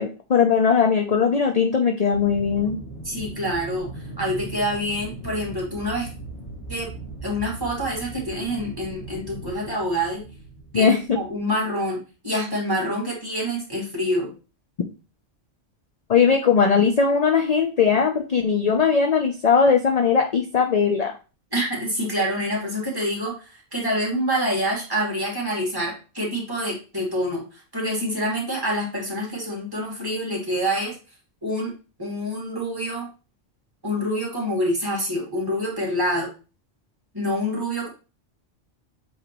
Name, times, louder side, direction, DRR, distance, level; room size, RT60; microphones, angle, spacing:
voice 1, 0.0-2.8 10.7-11.0 16.1-21.1, left 6 dB, 45° left, 4 dB, 0.5 m, -19 dB
Aircraft, 2.1-11.6, right 2 dB, 30° left, 1.3 m, -38 dB
voice 2, 3.0-6.1 6.7-6.9 7.2-10.2 10.7-12.0 12.2-14.3 21.5-30.9 31.4-31.7 32.0-33.1 33.8-36.3 37.1-37.9, equal, 20° right, -3 dB, 2.5 m, -26 dB
7.8 x 4.1 x 3.0 m, 0.33 s
omnidirectional pair, 1.3 m